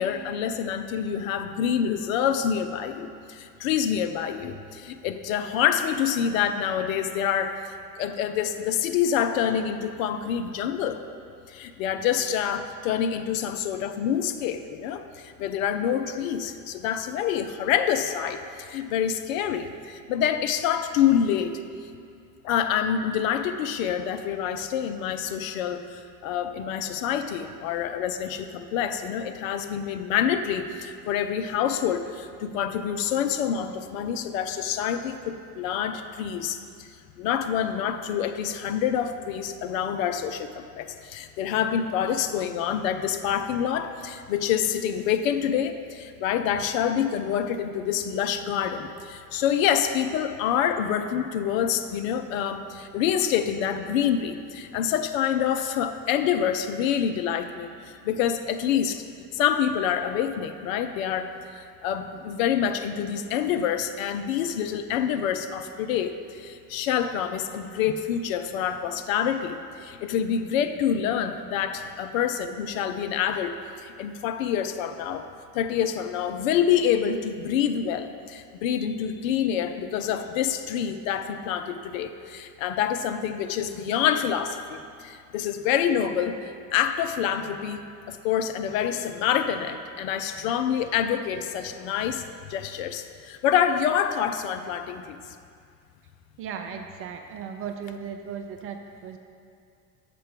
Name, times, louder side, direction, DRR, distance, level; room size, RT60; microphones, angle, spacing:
voice 1, 0.0-11.0 11.5-21.6 22.4-36.9 37.2-59.0 59.3-75.3 75.5-95.2, left 9 dB, 60° left, 8 dB, 0.5 m, -27 dB
voice 2, 96.4-99.2, right 7 dB, 30° right, 5 dB, 0.4 m, -36 dB
6.7 x 4.3 x 5.1 m, 2.4 s
figure-of-eight pair, 60°, 47 cm